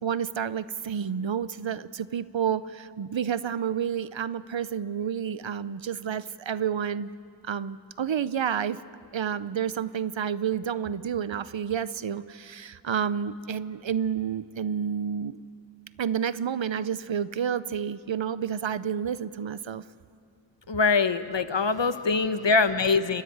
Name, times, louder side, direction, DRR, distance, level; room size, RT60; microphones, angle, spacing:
voice 1, 0.0-7.1 7.4-8.8 9.1-15.4 16.0-19.8, right 8 dB, 90° right, 16 dB, 0.6 m, -30 dB
voice 2, 20.7-23.2, left 4 dB, 75° left, 10 dB, 1.1 m, -23 dB
30.0 x 15.0 x 9.9 m, 2.4 s
wide cardioid pair, 45°, 44 cm